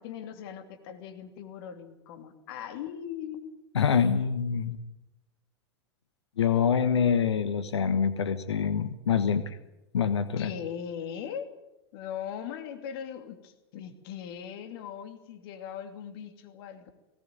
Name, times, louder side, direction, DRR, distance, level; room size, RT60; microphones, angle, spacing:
voice 1, 0.0-3.5 10.4-11.6 11.9-16.9, left 8 dB, 60° left, 7 dB, 2.8 m, -39 dB
voice 2, 3.7-4.8 6.4-9.6 9.9-10.5, left 7 dB, 80° left, 11 dB, 1.3 m, -25 dB
18.5 x 18.0 x 9.0 m, 0.95 s
hypercardioid pair, 95°, 14 cm